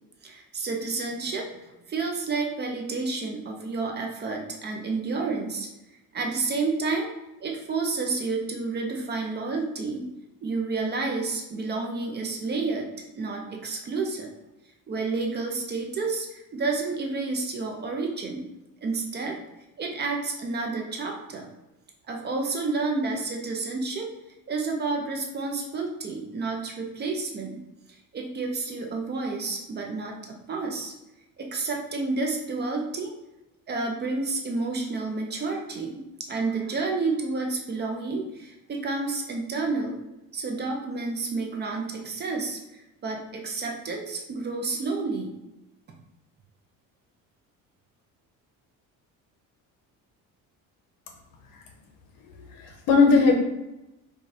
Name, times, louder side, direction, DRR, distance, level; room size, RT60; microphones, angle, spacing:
voice 1, 0.2-1.5 1.9-5.7 6.1-7.1 7.4-10.1 10.4-12.9 13.1-14.3 14.9-18.5 18.8-19.4 19.8-21.5 22.1-24.1 24.5-27.6 27.9-30.9 31.4-33.1 33.7-40.0 40.3-45.3, right 3 dB, 30° right, 1 dB, 0.5 m, -30 dB
voice 2, 52.4-53.3, left 4 dB, 75° left, 3 dB, 0.9 m, -19 dB
4.8 x 2.3 x 2.6 m, 0.95 s
cardioid pair, 145°, 34 cm